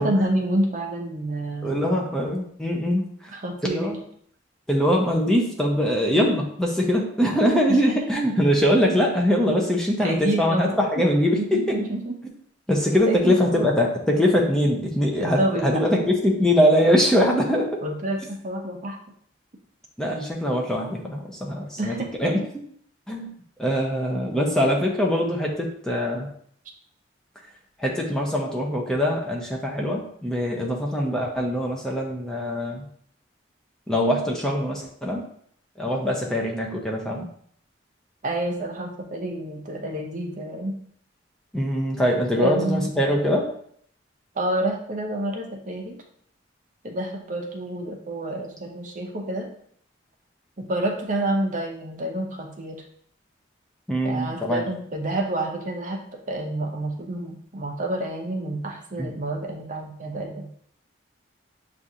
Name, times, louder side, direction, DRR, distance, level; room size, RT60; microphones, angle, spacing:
voice 1, 0.0-2.1 3.3-4.0 7.7-7.8 10.0-11.0 11.3-12.2 13.1-13.7 15.2-15.8 17.8-19.0 21.8-22.3 38.2-40.8 42.4-42.9 44.4-46.0 46.8-49.5 50.6-52.8 54.0-60.5, right 1 dB, 40° right, 2 dB, 0.6 m, -28 dB
voice 2, 1.6-3.3 3.6-4.0 4.7-11.8 12.7-17.8 20.0-22.4 23.1-23.3 23.6-26.3 27.8-32.9 33.9-35.2 35.8-37.3 41.5-43.5 53.9-54.7 59.0-59.1, equal, 5° left, -2 dB, 0.5 m, -22 dB
7.0 x 2.5 x 2.7 m, 0.63 s
head